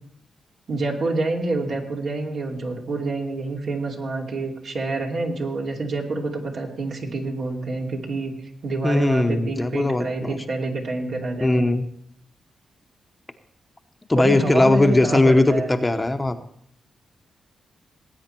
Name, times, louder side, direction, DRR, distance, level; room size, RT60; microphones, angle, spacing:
voice 1, 0.7-8.3 8.6-11.6 14.1-15.8, right 2 dB, 65° right, -1 dB, 2.8 m, -27 dB
voice 2, 8.8-10.4 11.4-11.9 14.1-16.4, left 2 dB, 20° left, 7 dB, 0.9 m, -19 dB
19.0 x 9.0 x 4.5 m, 0.70 s
cardioid pair, 85°, 0 cm